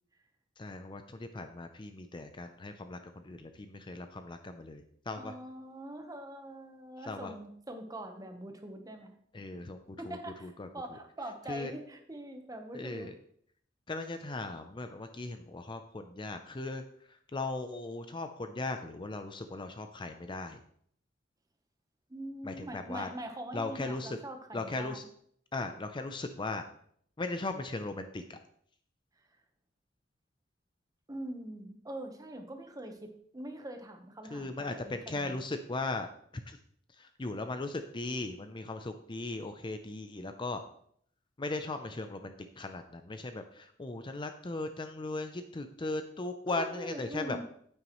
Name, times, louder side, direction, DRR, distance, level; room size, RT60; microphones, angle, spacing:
voice 1, 0.6-5.3 7.1-7.3 9.3-10.7 11.5-11.7 12.7-13.1 13.9-16.8 17.1-20.6 22.4-23.1 23.5-24.2 24.5-25.1 25.5-26.6 27.2-28.4 34.3-36.1 36.5-36.6 37.0-40.6 41.4-47.4, left 2 dB, 25° left, 7 dB, 0.5 m, -38 dB
voice 2, 5.2-9.1 10.0-13.1 22.1-25.0 31.1-35.4 46.5-47.4, right 1 dB, 20° right, 5 dB, 1.1 m, -43 dB
9.3 x 8.8 x 3.1 m, 0.65 s
head